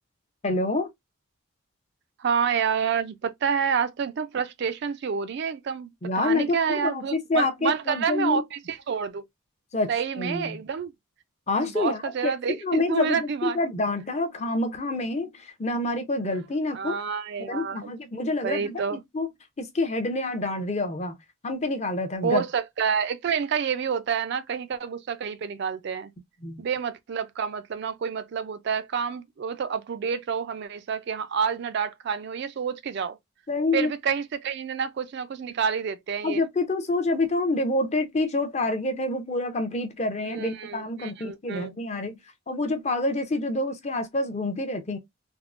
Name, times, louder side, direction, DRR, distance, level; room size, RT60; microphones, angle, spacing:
voice 1, 0.4-0.9 6.0-8.4 9.7-10.6 11.5-17.0 17.5-19.3 19.6-21.2 21.4-22.4 26.4-26.6 33.5-33.9 36.2-42.2 42.5-45.0, left 2 dB, 30° left, 0.5 m, -27 dB
voice 2, 2.2-9.2 9.9-10.9 11.6-13.6 16.7-17.9 18.4-19.0 22.2-26.1 26.6-33.2 33.7-36.4 40.2-41.7, right 6 dB, 50° right, 0.3 m, -28 dB
3.5 x 2.0 x 2.4 m
head